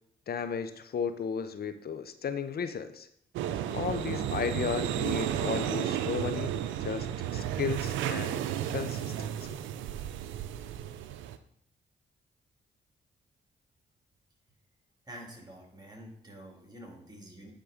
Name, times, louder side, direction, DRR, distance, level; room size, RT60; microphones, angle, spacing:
voice 1, 0.3-3.1 3.7-6.5 6.8-7.1 7.3-8.4 8.7-9.6, left 7 dB, 55° left, 11 dB, 0.7 m, -34 dB
sound 1, 3.3-11.4, right 10 dB, 85° right, 0.5 m, -33 dB
voice 2, 15.1-17.5, equal, 20° right, 0 dB, 2.8 m, -47 dB
9.8 x 3.8 x 5.0 m, 0.72 s
supercardioid pair, 55°, 19 cm